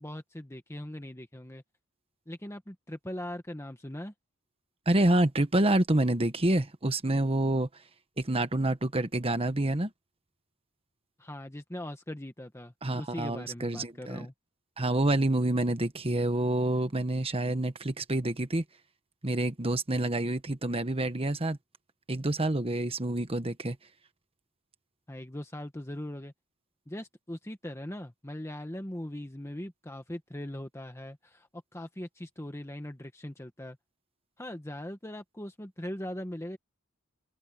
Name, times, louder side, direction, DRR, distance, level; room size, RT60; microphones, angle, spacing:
voice 1, 0.0-1.6 2.3-4.1 11.2-14.3 25.1-26.3 26.9-33.8 34.4-36.6, left 1 dB, 10° left, 1.3 m, -40 dB
voice 2, 4.9-7.7 8.2-9.9 12.8-14.3 14.8-18.6 19.2-21.6 22.1-23.8, right 1 dB, 25° right, 1.3 m, -27 dB
head